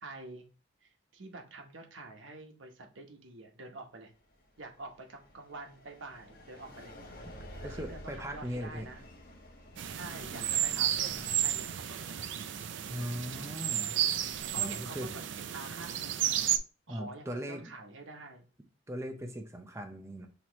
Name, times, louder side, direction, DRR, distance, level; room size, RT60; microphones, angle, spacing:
voice 1, 0.0-0.5 0.8-4.1 4.6-7.3 7.6-9.0 10.0-12.3 14.5-15.3 15.5-16.3 16.9-18.5 19.1-19.4, right 2 dB, 85° right, 3 dB, 1.0 m, -47 dB
sound 1, 4.2-11.8, equal, 50° left, 1.1 m, -50 dB
voice 2, 7.6-8.9 12.9-13.9 14.6-15.1 16.9-17.7 18.9-20.3, equal, 15° right, 4 dB, 0.5 m, -39 dB
sound 2, 9.8-16.6, right 10 dB, 70° right, 0.4 m, -32 dB
5.7 x 3.0 x 3.0 m, 0.35 s
head